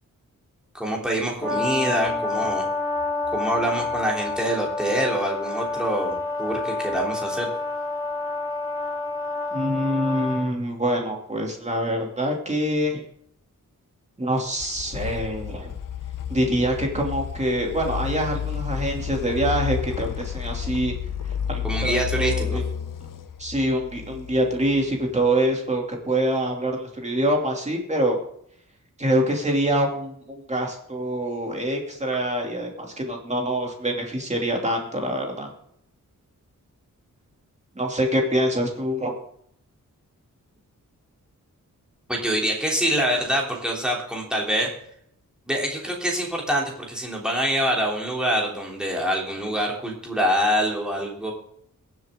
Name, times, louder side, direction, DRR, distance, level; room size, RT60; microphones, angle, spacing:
voice 1, 0.7-2.7 3.3-7.5 21.6-22.6 42.1-44.7 45.5-51.3, equal, ahead, -2 dB, 3.1 m, -25 dB
Brass instrument, 1.4-10.4, left 3 dB, 40° left, 3.7 m, -28 dB
voice 2, 1.5-2.2 9.5-13.0 14.2-15.7 16.3-20.9 21.5-22.6 23.4-28.2 29.0-35.5 37.7-39.1, right 1 dB, 20° right, 1 dB, 2.6 m, -25 dB
sound 1, 14.4-25.2, left 9 dB, 70° left, 0.9 m, -31 dB
22.5 x 7.6 x 3.7 m, 0.69 s
wide cardioid pair, 165°, 33 cm